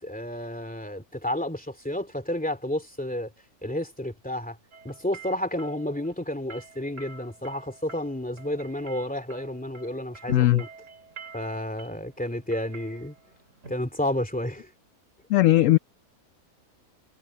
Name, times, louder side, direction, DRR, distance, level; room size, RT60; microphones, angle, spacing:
voice 1, 0.0-3.3 3.6-4.6 4.8-10.7 11.3-13.1 13.7-14.7, left 1 dB, 5° left, 2.5 m, -31 dB
sound 1, 4.7-14.6, right 4 dB, 55° right, 2.4 m, -48 dB
voice 2, 10.3-10.6 15.3-15.8, left 15 dB, 65° left, 0.8 m, -18 dB
omnidirectional pair, 1.6 m